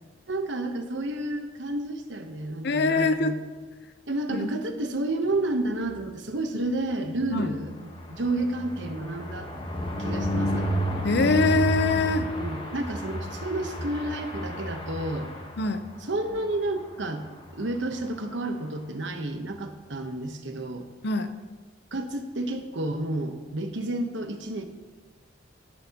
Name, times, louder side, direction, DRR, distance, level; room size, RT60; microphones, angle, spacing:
voice 1, 0.3-3.4 4.1-9.5 10.0-10.7 12.1-15.3 16.0-17.2 17.5-20.9 21.9-24.6, right 2 dB, 65° right, 6 dB, 1.0 m, -31 dB
voice 2, 2.6-3.4 4.3-4.5 7.3-7.5 11.0-12.3 15.6-15.8 21.0-21.3, left 3 dB, 55° left, 10 dB, 0.7 m, -23 dB
sound 1, 7.2-16.0 16.4-16.6 16.8-16.9 17.2-17.5, equal, 25° left, 1.2 m, -31 dB
17.0 x 7.5 x 2.9 m, 1.3 s
head